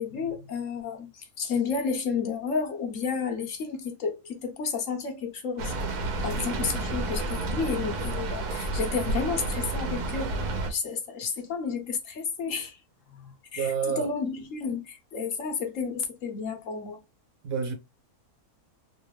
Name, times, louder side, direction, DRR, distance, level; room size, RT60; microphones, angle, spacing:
voice 1, 0.0-5.7 6.0-10.3 10.7-12.8 13.1-17.0, left 5 dB, 60° left, 1.1 m, -31 dB
Rain, 5.6-10.7, right 2 dB, 85° right, 1.4 m, -30 dB
voice 2, 13.5-14.1 17.4-17.7, right 6 dB, 65° right, 1.3 m, -28 dB
3.0 x 3.0 x 3.1 m
omnidirectional pair, 1.6 m